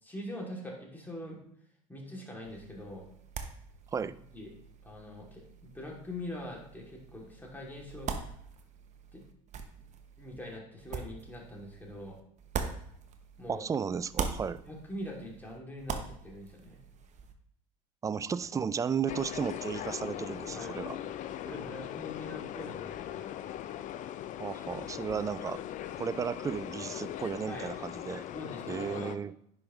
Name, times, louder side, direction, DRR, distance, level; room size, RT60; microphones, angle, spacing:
voice 1, 0.0-1.4 1.9-3.1 4.0-4.5 4.8-8.3 9.1-9.2 10.2-12.2 13.4-13.6 14.6-16.8 20.5-20.7 21.4-23.3 27.4-27.7 28.3-29.1, left 1 dB, 10° left, -2 dB, 2.7 m, -43 dB
sound 1, 2.4-13.6 13.9-17.3, right 6 dB, 40° right, 0.9 m, -42 dB
voice 2, 13.5-14.6 18.0-21.0 24.4-25.6 26.0-28.2 28.7-29.3, right 6 dB, 20° right, 16 dB, 0.3 m, -34 dB
sound 2, 19.1-29.2, left 11 dB, 45° left, 0.5 m, -40 dB
10.0 x 5.2 x 3.1 m, 0.68 s
hypercardioid pair, 80°, 18 cm